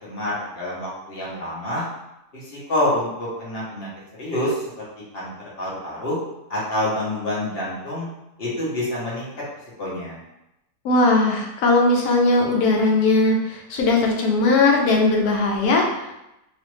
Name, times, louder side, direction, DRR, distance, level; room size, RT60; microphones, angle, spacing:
voice 1, 0.0-1.8 2.3-3.9 4.2-4.6 5.1-5.3 5.6-6.2 6.5-8.1 8.4-9.3 9.8-10.2, left 1 dB, 40° left, -6 dB, 1.1 m, -27 dB
voice 2, 10.8-16.1, left 2 dB, 75° left, 1 dB, 1.1 m, -19 dB
3.1 x 2.4 x 3.0 m, 0.90 s
omnidirectional pair, 1.7 m